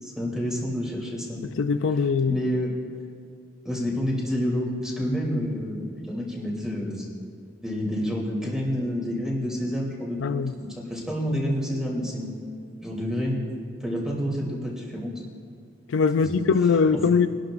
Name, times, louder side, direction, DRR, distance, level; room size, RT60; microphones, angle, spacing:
voice 1, 0.0-1.4 2.3-2.7 3.6-7.1 7.6-10.4 10.8-12.3 12.8-13.4 13.8-15.1 16.2-16.4, equal, 5° right, 3.0 m, -28 dB
voice 2, 1.4-2.4 10.2-10.5 15.9-17.3, left 5 dB, 85° left, 0.4 m, -22 dB
24.0 x 12.0 x 2.6 m
head